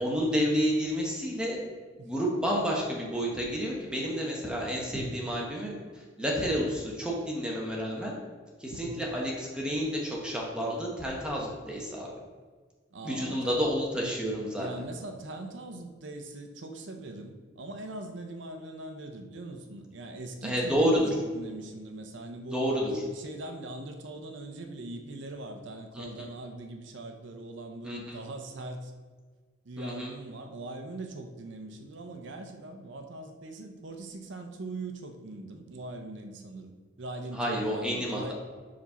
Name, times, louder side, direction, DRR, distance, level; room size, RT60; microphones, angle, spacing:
voice 1, 0.0-1.6 2.0-5.8 6.2-8.2 8.6-12.1 13.0-14.7 20.4-21.1 22.5-22.9 25.9-26.1 27.8-28.2 29.8-30.1 37.3-38.3, equal, 5° right, -3 dB, 1.0 m, -30 dB
voice 2, 12.9-13.6 14.5-28.9 29.6-36.7 37.0-38.3, right 2 dB, 65° right, 5 dB, 0.6 m, -41 dB
5.1 x 4.0 x 5.6 m, 1.5 s
head